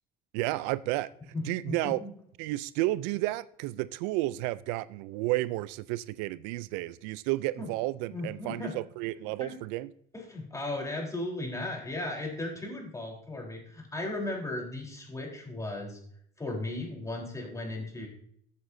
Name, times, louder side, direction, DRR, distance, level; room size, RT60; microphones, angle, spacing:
voice 1, 0.3-1.1 1.4-2.0 2.4-9.9, right 18 dB, 85° right, 0.4 m, -32 dB
voice 2, 1.3-2.1 7.6-7.7 8.1-8.8 9.4-9.5 10.1-16.0 16.4-18.1, left 2 dB, 15° left, 3.8 m, -36 dB
14.0 x 8.0 x 2.7 m
supercardioid pair, 95°, 21 cm